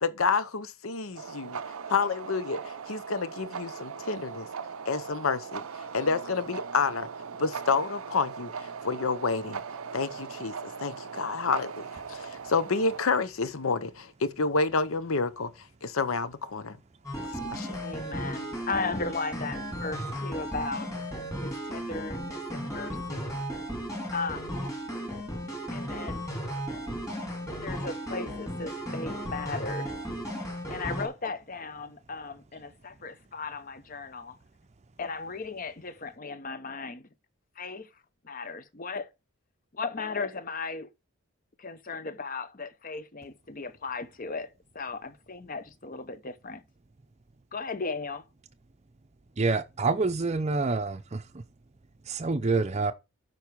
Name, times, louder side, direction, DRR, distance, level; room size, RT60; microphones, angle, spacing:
voice 1, 0.0-1.6 1.9-4.5 4.9-5.6 5.9-7.1 7.4-9.6 9.9-10.5 10.8-11.8 12.1-15.5 15.8-16.8 17.4-17.8, left 4 dB, 70° left, 0.8 m, -29 dB
sound 1, 1.1-13.0, right 6 dB, 75° right, 0.6 m, -39 dB
sound 2, 17.0-31.1, equal, 15° left, 2.8 m, -35 dB
voice 2, 17.8-20.9 21.4-23.3 24.1-24.5 25.7-26.2 27.5-29.9 30.7-34.3 35.0-37.1 37.6-37.9 38.3-39.1 39.8-40.9 41.6-44.5 44.7-46.6 47.5-48.2, left 4 dB, 40° left, 0.8 m, -36 dB
voice 3, 49.4-51.2 52.1-52.9, right 3 dB, 30° right, 0.5 m, -27 dB
12.0 x 4.7 x 4.7 m
head